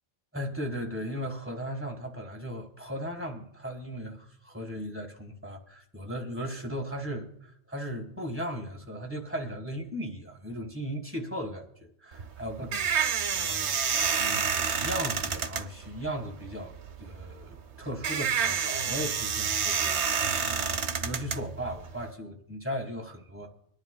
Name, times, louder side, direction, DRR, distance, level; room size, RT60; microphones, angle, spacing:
voice 1, 0.3-13.8 14.2-14.5 14.8-16.7 17.0-23.5, equal, 10° right, 1.5 m, -37 dB
sound 1, 12.1-22.1, right 7 dB, 75° right, 1.0 m, -29 dB
25.5 x 10.5 x 2.2 m
omnidirectional pair, 1.2 m